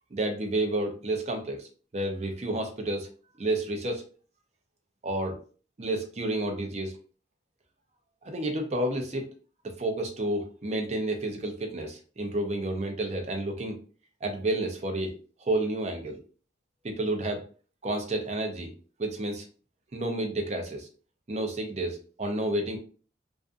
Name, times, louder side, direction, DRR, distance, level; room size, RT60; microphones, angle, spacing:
voice 1, 0.1-3.1 3.4-4.0 5.0-5.4 5.8-6.9 8.2-9.3 9.6-13.8 14.2-15.1 15.4-16.2 16.8-17.4 17.8-18.7 19.0-19.5 19.9-20.9 21.3-22.8, right 1 dB, 40° right, 4 dB, 0.5 m, -30 dB
2.5 x 2.4 x 2.4 m, 0.38 s
head